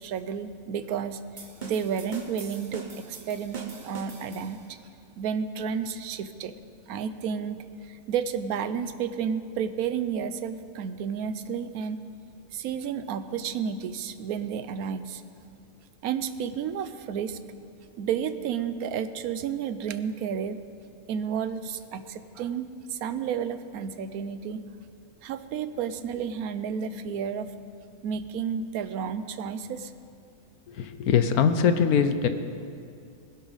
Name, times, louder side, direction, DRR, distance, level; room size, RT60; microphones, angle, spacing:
voice 1, 0.0-4.8 5.2-6.5 6.9-12.0 12.5-15.2 16.0-17.4 18.0-20.6 21.1-24.6 25.2-27.5 28.0-29.9, right 7 dB, 75° right, 12 dB, 1.1 m, -31 dB
sound 1, 1.4-4.8, right 4 dB, 35° right, 1.0 m, -42 dB
voice 2, 30.7-32.3, left 7 dB, 75° left, 9 dB, 1.2 m, -22 dB
20.5 x 11.0 x 4.0 m, 2.5 s
omnidirectional pair, 1.6 m